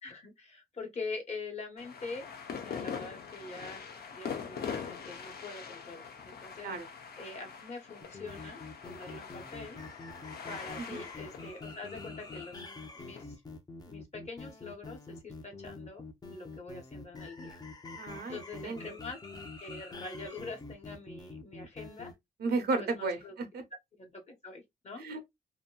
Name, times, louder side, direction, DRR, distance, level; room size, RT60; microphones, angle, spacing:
voice 1, 0.0-3.8 4.1-6.7 7.2-9.8 10.5-12.6 12.9-13.4 13.9-16.0 16.3-17.6 18.3-19.2 19.6-22.1 22.8-23.3 24.0-25.0, left 3 dB, 45° left, 1.0 m, -44 dB
sound 1, 1.8-13.2, left 6 dB, 80° left, 0.7 m, -43 dB
sound 2, 8.0-22.1, left 3 dB, 25° left, 0.6 m, -46 dB
voice 2, 18.0-18.8 22.4-23.6 25.0-25.3, right 3 dB, 85° right, 0.9 m, -34 dB
2.8 x 2.6 x 2.2 m
wide cardioid pair, 130°, 16 cm